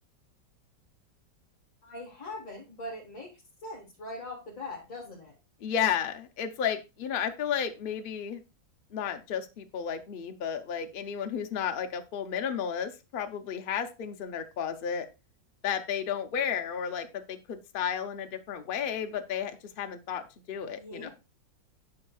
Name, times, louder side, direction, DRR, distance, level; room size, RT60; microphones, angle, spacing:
voice 1, 1.8-3.3 3.6-5.3 20.7-21.1, left 2 dB, 45° left, -3 dB, 2.0 m, -41 dB
voice 2, 5.6-8.4 8.9-15.1 15.6-21.1, left 8 dB, 75° left, 7 dB, 0.5 m, -33 dB
9.7 x 5.8 x 2.3 m, 0.27 s
omnidirectional pair, 2.0 m